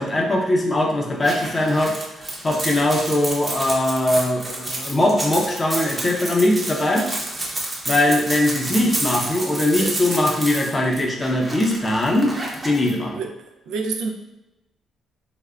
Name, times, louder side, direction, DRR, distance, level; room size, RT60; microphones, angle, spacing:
voice 1, 0.0-2.0 2.4-7.1 7.9-12.4 12.6-13.2, left 1 dB, 30° left, 0 dB, 0.6 m, -21 dB
sound 1, 1.2-12.9, right 1 dB, 25° right, 0.7 m, -30 dB
voice 2, 13.7-14.1, right 4 dB, 85° right, 2 dB, 0.3 m, -26 dB
3.4 x 2.1 x 2.3 m, 0.97 s
cardioid pair, 90°, 0 cm